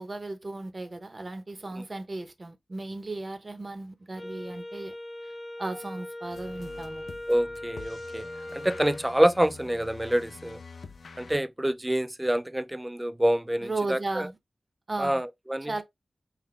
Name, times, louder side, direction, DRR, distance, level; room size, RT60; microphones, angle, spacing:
voice 1, 0.0-4.9 5.2-5.3 5.6-7.1 13.6-14.4 14.9-15.2 15.7-15.8, right 2 dB, 35° right, 0.8 m, -35 dB
Wind instrument woodwind instrument, 4.2-9.0, left 1 dB, 20° left, 0.9 m, -40 dB
sound 1, 6.3-11.4, left 4 dB, 75° left, 0.5 m, -47 dB
voice 2, 7.3-8.3 8.5-10.6 11.2-14.3 15.0-15.8, right 1 dB, 10° right, 0.4 m, -27 dB
5.8 x 2.2 x 3.1 m
wide cardioid pair, 115°, 0 cm